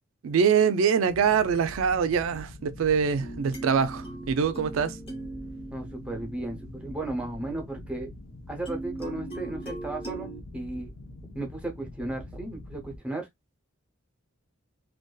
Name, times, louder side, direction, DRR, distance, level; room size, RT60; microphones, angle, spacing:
voice 1, 0.2-5.0, right 6 dB, 65° right, 0.3 m, -24 dB
sound 1, 1.0-13.0, left 1 dB, 85° left, 0.7 m, -44 dB
sound 2, 3.2-7.5 8.7-10.4, right 2 dB, 25° left, 0.8 m, -40 dB
voice 2, 5.7-8.1 8.5-10.9 11.3-13.3, right 2 dB, 5° right, 0.5 m, -35 dB
2.5 x 2.2 x 2.2 m
head